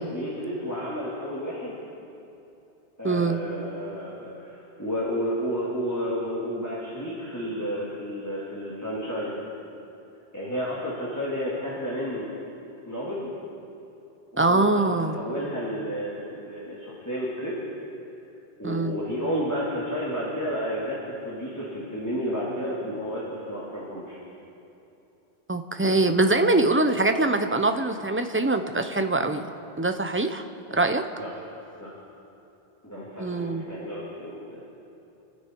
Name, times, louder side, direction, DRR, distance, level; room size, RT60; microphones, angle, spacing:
voice 1, 0.1-1.8 3.0-9.4 10.3-12.3 12.9-13.3 14.3-14.8 15.1-17.6 18.6-21.0 21.2-24.2 31.2-31.3 31.8-31.9 32.8-34.6, equal, 15° left, -8 dB, 2.7 m, -31 dB
voice 2, 3.0-3.4 14.4-15.2 18.6-19.0 25.5-29.4 29.8-30.5 30.7-31.1 33.2-33.6, right 2 dB, 15° right, 7 dB, 0.6 m, -23 dB
27.5 x 9.7 x 4.6 m, 2.8 s
omnidirectional pair, 1.1 m